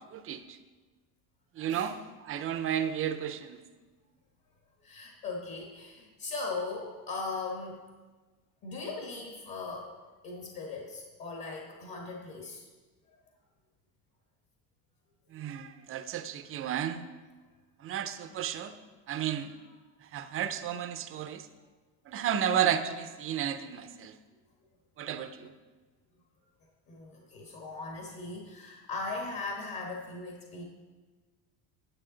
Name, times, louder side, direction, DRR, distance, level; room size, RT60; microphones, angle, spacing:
voice 1, 0.1-0.6 1.6-3.6 15.3-17.0 17.8-18.7 19.1-19.5 20.1-21.5 22.1-24.1 25.0-25.5, right 9 dB, 30° right, 10 dB, 0.4 m, -32 dB
voice 2, 4.8-7.8 8.6-9.9 10.2-12.6 26.9-30.6, left 3 dB, 45° left, 0 dB, 1.4 m, -39 dB
9.9 x 7.7 x 3.8 m, 1.3 s
cardioid pair, 135°, 49 cm